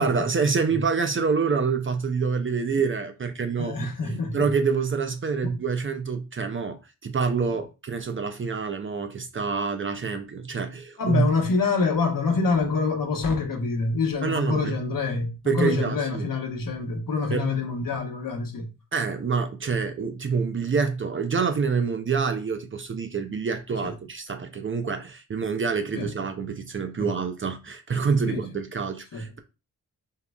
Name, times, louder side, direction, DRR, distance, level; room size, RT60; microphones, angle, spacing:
voice 1, 0.0-11.3 14.2-14.7 15.5-16.3 17.3-17.5 18.9-29.4, right 5 dB, 35° right, 0.4 m, -27 dB
voice 2, 3.6-4.5 5.4-5.6 11.0-18.7 23.8-23.9 25.9-26.1 27.0-27.1 28.3-28.4 29.1-29.2, left 4 dB, 60° left, 0.9 m, -26 dB
3.7 x 2.0 x 2.2 m
cardioid pair, 50°, 38 cm